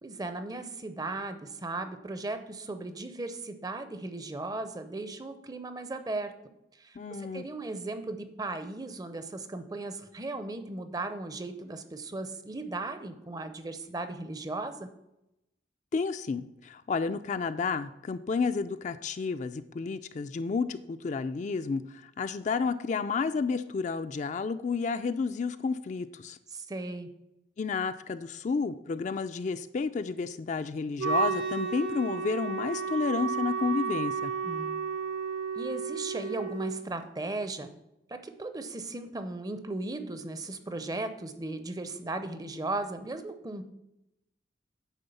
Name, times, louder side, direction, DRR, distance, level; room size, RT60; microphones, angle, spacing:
voice 1, 0.0-6.3 6.7-14.9 26.5-27.1 34.4-34.8 35.6-37.7 38.1-43.7, right 2 dB, 20° right, 9 dB, 0.5 m, -37 dB
voice 2, 7.0-7.4 15.9-26.4 27.6-34.3, left 4 dB, 40° left, 10 dB, 0.3 m, -31 dB
Wind instrument woodwind instrument, 31.0-36.8, right 5 dB, 80° right, 1.1 m, -32 dB
9.2 x 3.6 x 7.0 m, 0.88 s
head